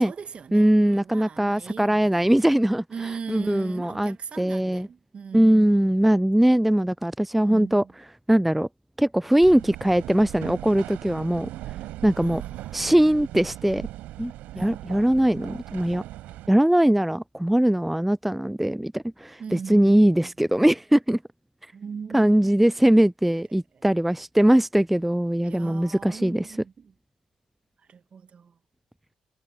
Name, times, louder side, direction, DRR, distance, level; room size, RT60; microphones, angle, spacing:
voice 1, 0.0-2.5 2.9-6.0 7.4-7.9 12.2-12.9 14.5-14.9 19.4-20.3 21.7-22.6 23.7-23.8 25.4-26.9 27.9-28.6, right 6 dB, 45° right, 1.7 m, -39 dB
voice 2, 0.5-2.8 3.3-4.9 5.3-7.8 8.3-8.7 9.0-11.5 12.0-12.4 12.7-13.9 14.2-16.0 16.5-21.2 22.1-26.5, right 1 dB, 5° right, 0.3 m, -21 dB
sound 1, 9.4-16.5, right 15 dB, 70° right, 5.7 m, -39 dB
hypercardioid pair, 50°, 3 cm